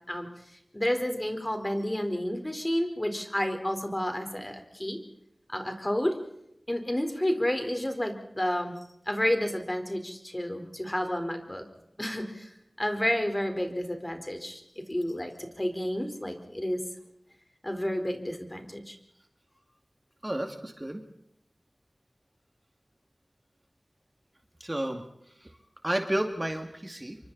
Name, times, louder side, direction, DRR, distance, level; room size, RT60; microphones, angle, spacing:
voice 1, 0.7-5.0 5.5-6.2 6.7-8.8 9.1-11.6 12.0-12.5 12.8-14.6 14.9-16.8 17.6-19.0, left 1 dB, 25° left, 6 dB, 4.3 m, -30 dB
voice 2, 20.2-21.0 24.6-25.0 25.4-25.5 25.8-27.2, right 1 dB, 25° right, 5 dB, 2.3 m, -31 dB
28.0 x 24.5 x 4.2 m, 0.78 s
wide cardioid pair, 40°, 0 cm